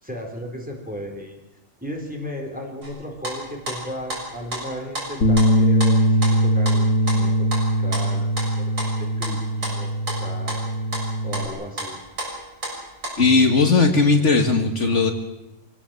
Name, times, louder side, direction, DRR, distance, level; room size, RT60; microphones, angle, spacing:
voice 1, 0.0-1.4 1.8-8.3 8.6-9.9 10.2-10.6 11.2-12.0, equal, 5° right, 0 dB, 4.1 m, -35 dB
sound 1, 2.8-2.9 3.2-8.5 8.8-9.3 9.6-11.1 11.3-13.1, right 1 dB, 75° right, 7.6 m, -31 dB
Bass guitar, 5.2-11.5, equal, 80° left, 2.6 m, -21 dB
voice 2, 13.2-15.1, left 4 dB, 60° left, 4 dB, 2.0 m, -17 dB
25.5 x 17.0 x 7.6 m, 0.95 s
omnidirectional pair, 1.4 m